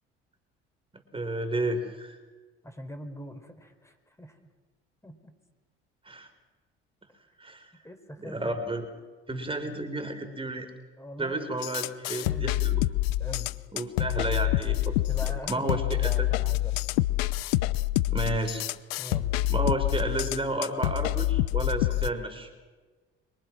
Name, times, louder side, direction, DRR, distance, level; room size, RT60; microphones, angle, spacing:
voice 1, 1.1-2.2 6.0-6.3 7.4-7.7 8.2-8.9 9.3-10.7 11.2-12.8 13.7-16.3 18.1-18.6 19.5-22.5, right 2 dB, 20° right, 7 dB, 4.1 m, -32 dB
voice 2, 2.6-4.5 5.0-5.4 7.8-8.6 11.0-11.8 12.2-12.5 13.2-13.5 15.1-16.8 19.0-19.3, equal, 10° left, 6 dB, 4.4 m, -42 dB
sound 1, 11.6-22.1, left 15 dB, 75° left, 0.8 m, -27 dB
25.0 x 23.5 x 6.1 m, 1.3 s
hypercardioid pair, 60°, 30 cm